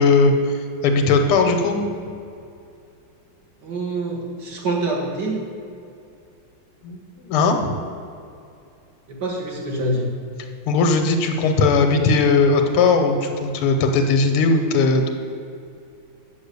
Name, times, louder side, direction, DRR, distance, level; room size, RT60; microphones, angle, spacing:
voice 1, 0.0-1.8 6.8-7.0 7.2-7.7 10.7-15.1, left 3 dB, 90° left, 5 dB, 1.8 m, -18 dB
voice 2, 3.6-5.4 9.1-10.1, right 2 dB, 55° right, -1 dB, 2.0 m, -25 dB
7.4 x 6.7 x 6.8 m, 2.5 s
omnidirectional pair, 2.3 m